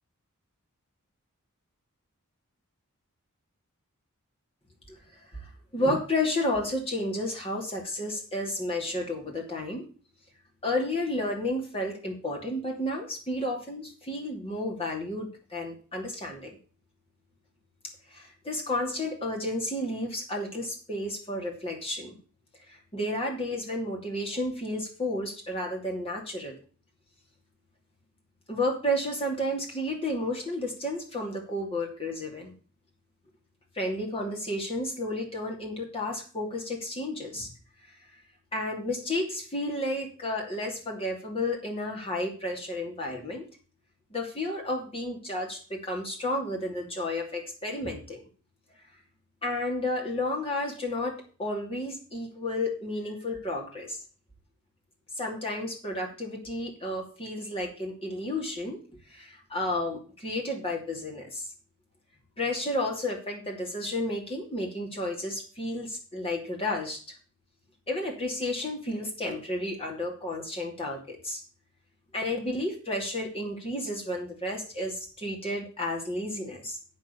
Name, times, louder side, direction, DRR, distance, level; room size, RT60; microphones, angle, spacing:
voice 1, 4.9-9.9 10.6-16.6 18.1-22.2 22.7-26.6 28.5-32.5 33.7-37.5 38.5-43.4 44.1-48.2 49.4-54.0 55.2-58.8 59.1-61.5 62.4-67.0 67.9-71.4 72.1-76.8, left 1 dB, 25° left, 0 dB, 2.8 m, -32 dB
7.9 x 6.5 x 7.0 m, 0.39 s
head